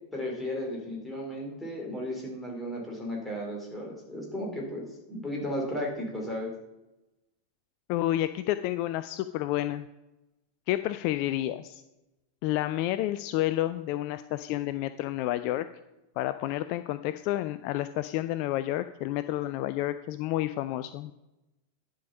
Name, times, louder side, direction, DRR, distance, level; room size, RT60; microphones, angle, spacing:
voice 1, 0.1-6.5, equal, 5° left, -2 dB, 3.1 m, -35 dB
voice 2, 7.9-9.9 10.7-11.8 12.4-15.7 16.2-21.1, left 14 dB, 45° left, 12 dB, 0.3 m, -30 dB
10.5 x 5.1 x 5.5 m, 0.97 s
figure-of-eight pair, 90°, 0 cm